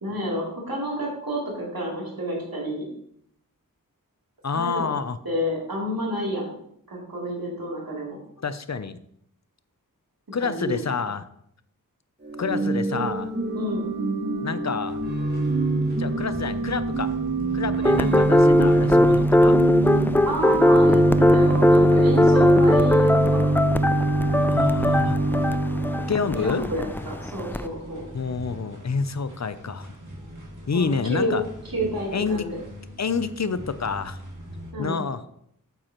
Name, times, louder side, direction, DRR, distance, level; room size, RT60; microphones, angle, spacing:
voice 1, 0.0-2.8 4.5-4.9 5.2-6.5 6.9-8.2 10.4-10.9 13.5-13.8 17.9-18.2 20.2-23.4 26.4-28.1 30.7-31.4 31.7-32.6 34.7-35.0, equal, 90° right, -4 dB, 3.1 m, -29 dB
voice 2, 4.4-5.2 8.4-9.0 10.3-11.3 12.4-13.3 14.4-15.0 16.0-17.1 17.5-19.5 24.5-25.2 26.1-26.7 28.1-29.9 30.7-31.4 32.1-32.5 33.0-34.2 34.8-35.2, left 5 dB, 50° left, 13 dB, 0.6 m, -28 dB
Organ / Church bell, 12.2-26.4, right 2 dB, 30° right, 1.5 m, -24 dB
sound 1, 14.8-34.7, equal, 60° right, 2.7 m, -42 dB
sound 2, 17.8-27.7, left 1 dB, 5° left, 0.3 m, -19 dB
8.6 x 7.7 x 3.0 m, 0.72 s
wide cardioid pair, 50°, 34 cm